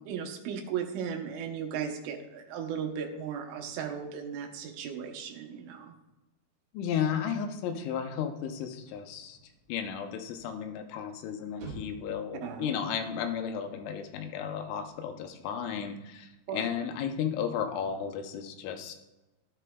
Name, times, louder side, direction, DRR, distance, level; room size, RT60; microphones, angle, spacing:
voice 1, 0.0-5.9 12.4-12.7 16.5-16.6, right 7 dB, 80° right, 3 dB, 3.4 m, -36 dB
voice 2, 6.7-9.4 9.7-19.0, left 8 dB, 80° left, 6 dB, 3.1 m, -34 dB
sound 1, 8.3-16.6, right 2 dB, 60° right, 3.6 m, -53 dB
13.0 x 8.3 x 2.3 m, 1.0 s
omnidirectional pair, 5.5 m